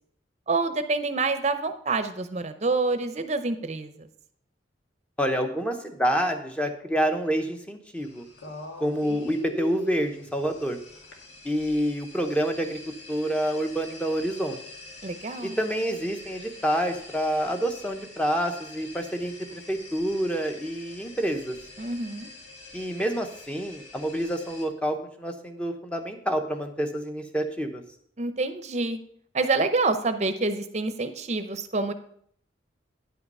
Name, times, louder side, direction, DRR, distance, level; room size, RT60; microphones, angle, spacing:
voice 1, 0.5-4.1 15.0-15.6 21.8-22.3 28.2-29.0 29.3-31.9, right 3 dB, 35° right, 10 dB, 0.7 m, -27 dB
voice 2, 5.2-8.2 8.8-10.8 11.4-12.8 13.1-14.6 15.4-21.5 22.7-27.8, equal, 5° left, 5 dB, 0.8 m, -28 dB
sound 1, 8.0-24.6, left 3 dB, 80° left, 1.8 m, -44 dB
10.0 x 5.8 x 5.4 m, 0.65 s
head